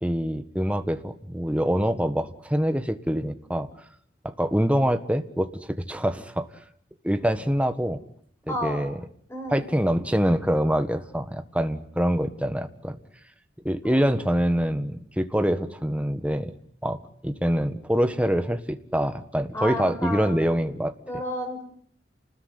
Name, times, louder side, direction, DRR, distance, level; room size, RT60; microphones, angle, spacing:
voice 1, 0.0-3.7 4.2-6.5 7.0-8.0 8.5-9.0 9.5-13.0 13.6-16.5 16.8-20.9, equal, 5° right, 9 dB, 1.6 m, -25 dB
voice 2, 8.5-8.9 9.3-9.6 13.8-14.0 19.5-20.5 21.1-21.6, equal, 15° left, 6 dB, 6.4 m, -31 dB
29.5 x 20.5 x 9.8 m, 0.65 s
head